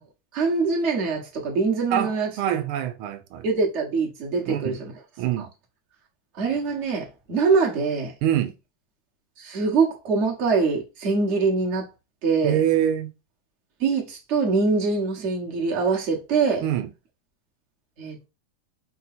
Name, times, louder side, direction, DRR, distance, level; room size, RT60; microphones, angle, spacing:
voice 1, 0.3-2.3 3.4-4.9 5.4-5.5 6.4-8.1 9.4-11.9 12.2-12.6 13.8-16.6 18.0-18.3, right 4 dB, 40° right, 1.3 m, -23 dB
voice 2, 1.9-3.5 4.5-4.8 5.2-5.5 8.2-8.5 12.4-13.1 16.6-16.9, right 11 dB, 85° right, 1.5 m, -25 dB
4.8 x 2.2 x 4.1 m
omnidirectional pair, 2.3 m